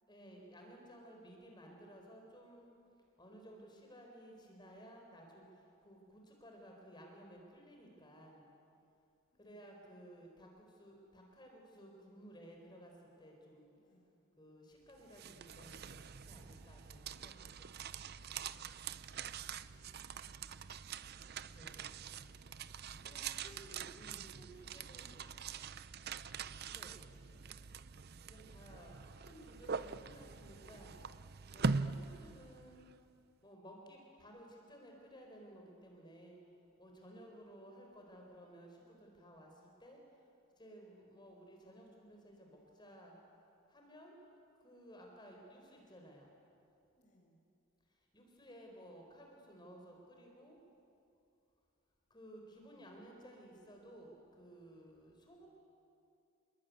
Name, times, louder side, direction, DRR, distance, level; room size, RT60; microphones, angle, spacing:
voice 1, 0.1-2.7 3.2-5.4 5.8-8.4 9.4-13.7 14.4-17.5 17.8-18.0 21.5-22.0 23.0-25.2 25.6-25.7 26.7-27.2 28.2-30.9 31.5-32.9 33.4-36.4 36.8-40.0 40.6-43.1 43.7-44.2 44.6-46.3 48.1-50.6 52.1-55.5, equal, 20° left, 1 dB, 4.4 m, -56 dB
voice 2, 9.3-9.8 13.7-14.1 19.4-22.4 23.2-24.1 24.8-25.7 27.2-27.7 46.9-47.4 52.5-53.0, equal, 40° left, -1 dB, 6.6 m, -73 dB
sound 1, 14.9-32.9, right 5 dB, 50° right, 0.6 m, -44 dB
28.5 x 21.5 x 9.5 m, 2.6 s
head